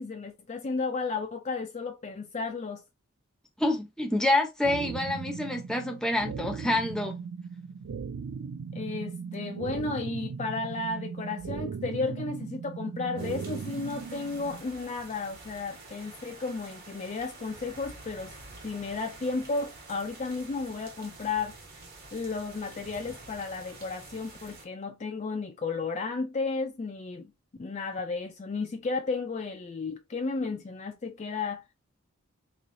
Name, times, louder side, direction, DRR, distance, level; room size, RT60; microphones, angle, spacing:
voice 1, 0.0-2.8 8.7-18.3 18.6-21.5 22.1-27.3 27.6-31.6, left 4 dB, 30° left, 0.4 m, -33 dB
voice 2, 3.6-7.1, left 1 dB, 5° left, 0.7 m, -27 dB
sound 1, 4.6-14.6, right 6 dB, 75° right, 0.3 m, -38 dB
sound 2, 13.2-24.7, right 3 dB, 45° right, 1.2 m, -48 dB
3.8 x 3.1 x 2.6 m
head